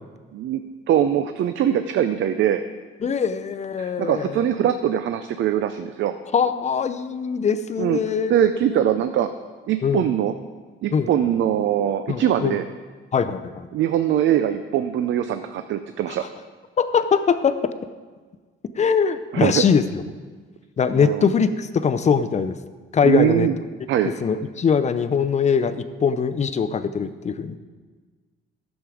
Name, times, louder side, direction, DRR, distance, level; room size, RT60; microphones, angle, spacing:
voice 1, 0.9-2.6 3.8-6.1 7.8-8.0 8.3-9.3 9.7-10.3 10.8-12.7 13.7-16.2 19.3-19.7 21.0-21.3 23.0-23.5 23.9-24.1, right 10 dB, 65° right, 9 dB, 0.5 m, -22 dB
voice 2, 3.0-4.4 6.3-8.8 9.8-10.1 10.9-11.1 12.1-12.6 13.1-13.7 16.2-16.3 16.8-17.7 18.8-20.0 20.8-22.6 22.9-23.5 24.0-27.6, left 6 dB, 35° left, 11 dB, 0.5 m, -22 dB
11.0 x 7.2 x 4.9 m, 1.4 s
cardioid pair, 135°, 21 cm